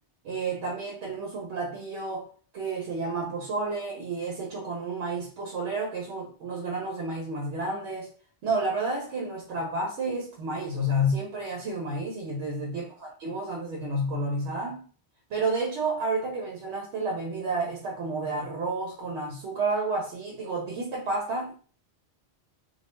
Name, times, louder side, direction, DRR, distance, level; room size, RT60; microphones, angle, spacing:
voice 1, 0.2-2.3 2.5-8.1 8.4-14.8 15.3-21.5, right 2 dB, 80° right, 0.9 m, -30 dB
2.3 x 2.1 x 2.9 m
omnidirectional pair, 1.1 m